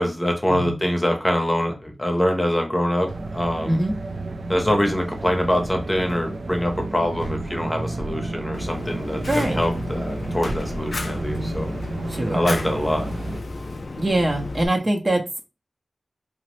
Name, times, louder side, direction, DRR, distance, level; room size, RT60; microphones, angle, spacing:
voice 1, 0.0-3.8 4.5-11.7 12.3-13.1, equal, 15° left, 4 dB, 0.7 m, -24 dB
sound 1, 3.1-13.4, right 2 dB, 85° right, 0.3 m, -31 dB
Fire, 8.5-14.7, left 2 dB, 60° left, 0.3 m, -33 dB
voice 2, 9.3-9.6 12.1-12.4 14.0-15.4, right 1 dB, 40° right, 2 dB, 0.6 m, -23 dB
2.9 x 2.0 x 3.0 m, 0.28 s
wide cardioid pair, 75°, 0 cm